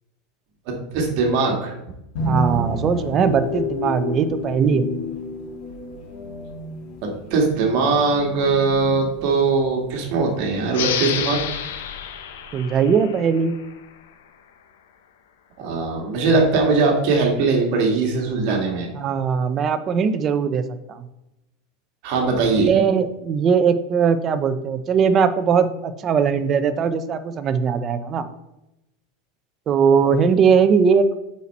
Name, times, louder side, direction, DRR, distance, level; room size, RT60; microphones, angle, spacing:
voice 1, 0.7-1.7 7.0-11.4 15.6-18.9 22.0-22.7, right 4 dB, 50° right, 1 dB, 1.7 m, -20 dB
sound 1, 2.2-10.9, equal, 55° left, 2.1 m, -30 dB
voice 2, 2.2-4.9 12.5-13.5 18.9-20.6 20.9-21.1 22.6-28.2 29.7-31.0, right 6 dB, 25° right, 11 dB, 0.5 m, -19 dB
sound 2, 10.7-14.0, left 8 dB, 90° left, 0.8 m, -29 dB
8.2 x 4.3 x 4.2 m, 0.91 s
supercardioid pair, 160°, 0 cm